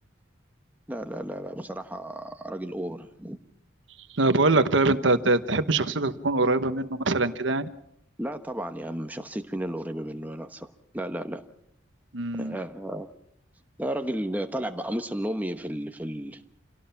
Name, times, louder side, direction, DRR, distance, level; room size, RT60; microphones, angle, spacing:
voice 1, 0.9-3.4 8.2-10.7 10.9-11.4 12.3-13.1 13.8-16.4, right 1 dB, 10° right, 7 dB, 1.1 m, -33 dB
voice 2, 4.1-7.7 12.1-12.6, right 3 dB, 70° right, 11 dB, 1.1 m, -23 dB
27.5 x 17.5 x 5.8 m, 0.74 s
head